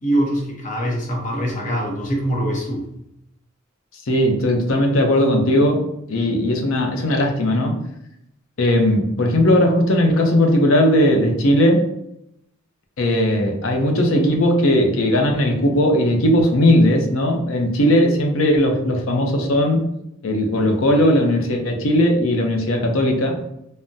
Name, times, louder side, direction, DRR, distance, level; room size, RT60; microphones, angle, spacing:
voice 1, 0.0-2.9, right 1 dB, 40° left, -1 dB, 0.7 m, -23 dB
voice 2, 4.1-5.8 6.1-7.8 8.6-11.9 13.0-19.8 20.2-23.4, left 1 dB, 70° left, 2 dB, 0.6 m, -18 dB
3.4 x 2.0 x 2.6 m, 0.79 s
head